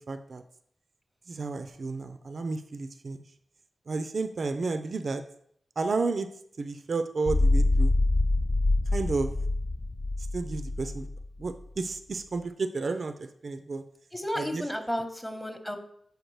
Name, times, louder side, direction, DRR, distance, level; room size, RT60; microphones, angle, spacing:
voice 1, 0.1-0.4 1.3-3.2 3.9-5.2 5.8-6.3 6.6-7.9 8.9-9.3 10.3-11.1 11.4-13.8 14.4-14.6, right 3 dB, 60° right, 10 dB, 0.4 m, -31 dB
sound 1, 7.3-11.5, left 2 dB, 40° left, 0.3 m, -25 dB
voice 2, 14.1-15.8, equal, 10° left, 6 dB, 0.8 m, -32 dB
6.5 x 4.7 x 3.1 m, 0.69 s
cardioid pair, 55°, 0 cm